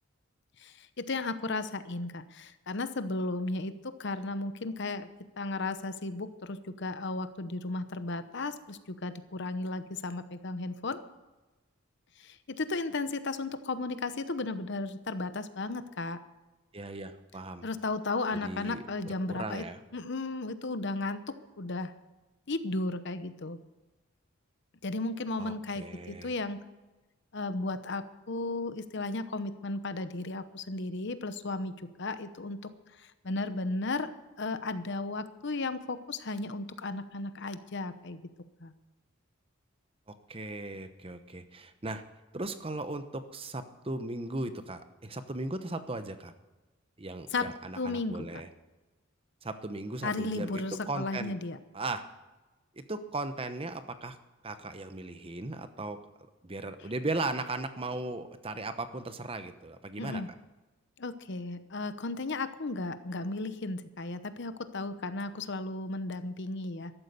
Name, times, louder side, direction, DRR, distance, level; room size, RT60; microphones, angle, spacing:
voice 1, 0.6-5.1 5.4-11.0 12.2-16.2 17.6-19.6 19.9-21.2 21.6-21.9 22.5-23.6 24.8-26.6 27.3-32.7 33.2-34.1 34.4-38.2 38.6-38.7 47.3-47.5 47.8-48.3 50.0-51.6 60.0-60.3 61.0-66.9, left 2 dB, 55° left, 11 dB, 0.9 m, -34 dB
voice 2, 16.7-17.7 18.3-19.8 25.4-26.3 40.3-42.0 42.3-46.3 47.0-48.5 49.4-51.3 51.7-52.1 52.9-54.2 54.4-56.0 56.4-60.2, right 2 dB, 25° right, 10 dB, 0.9 m, -37 dB
13.5 x 12.0 x 6.7 m, 1.1 s
head